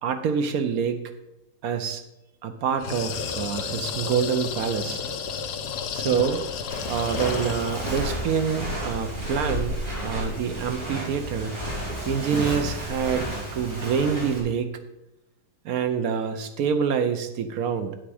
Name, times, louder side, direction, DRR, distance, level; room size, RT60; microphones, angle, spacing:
voice 1, 0.0-1.0 1.6-2.0 2.4-5.0 5.9-6.4 6.9-11.5 12.0-14.7 15.6-18.0, right 7 dB, 70° right, 8 dB, 1.1 m, -26 dB
sound 1, 2.8-8.1, left 6 dB, 80° left, 1.3 m, -32 dB
Walk footsteps, 6.7-14.4, right 1 dB, 55° right, 3.5 m, -31 dB
9.3 x 6.1 x 4.9 m, 0.93 s
omnidirectional pair, 1.7 m